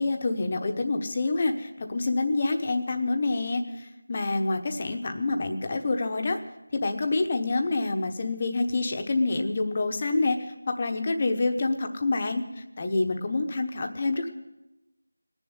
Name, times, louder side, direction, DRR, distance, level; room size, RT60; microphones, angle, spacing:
voice 1, 0.0-6.4 6.7-14.3, left 3 dB, 30° left, 6 dB, 1.1 m, -27 dB
20.0 x 7.2 x 9.6 m, 0.99 s
figure-of-eight pair, 175°, 0 cm